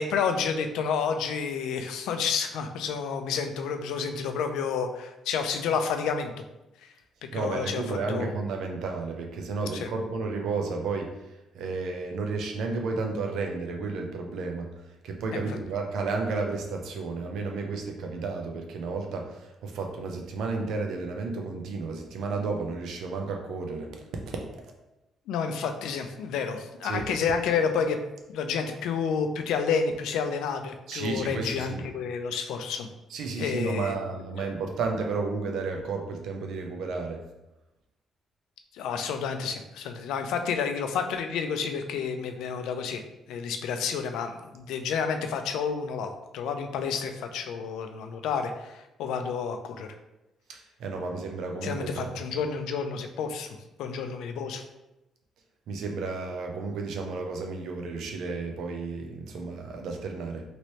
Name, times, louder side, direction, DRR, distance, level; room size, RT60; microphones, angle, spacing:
voice 1, 0.0-6.3 6.8-6.9 7.3-8.4 9.7-9.9 15.3-15.4 25.3-28.0 28.3-32.9 33.4-33.9 38.7-43.0 43.3-49.9 51.6-54.6, left 6 dB, 90° left, 6 dB, 0.3 m, -30 dB
voice 2, 7.3-11.3 11.5-14.7 15.0-23.9 24.3-24.4 26.8-27.1 30.9-31.8 33.1-37.2 50.5-52.2 55.7-60.4, right 4 dB, 80° right, 3 dB, 0.5 m, -32 dB
3.0 x 2.8 x 3.0 m, 0.95 s
cardioid pair, 90°, 0 cm